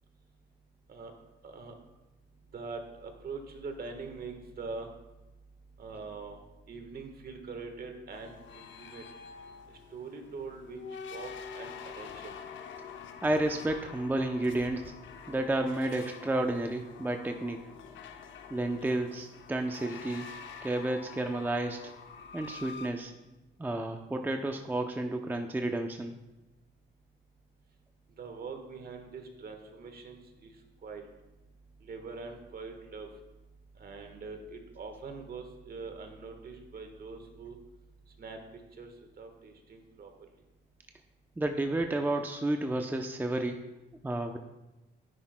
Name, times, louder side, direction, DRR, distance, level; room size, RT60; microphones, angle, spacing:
voice 1, 1.4-1.7 2.5-4.9 5.8-6.4 6.7-9.0 9.9-10.8 11.1-12.4 28.2-30.5 30.8-31.0 31.8-33.1 33.8-37.5 38.2-38.4 38.8-38.9 39.2-40.1, right 4 dB, 50° right, 5 dB, 1.4 m, -43 dB
sound 1, 8.1-22.9, left 6 dB, 70° left, 0.8 m, -47 dB
voice 2, 13.2-14.8 15.3-17.6 18.5-20.3 20.6-21.9 22.3-23.1 23.6-26.2 41.4-43.6 44.0-44.4, right 1 dB, 10° right, 5 dB, 0.6 m, -31 dB
10.0 x 9.8 x 2.2 m, 1.0 s
cardioid pair, 90°, 20 cm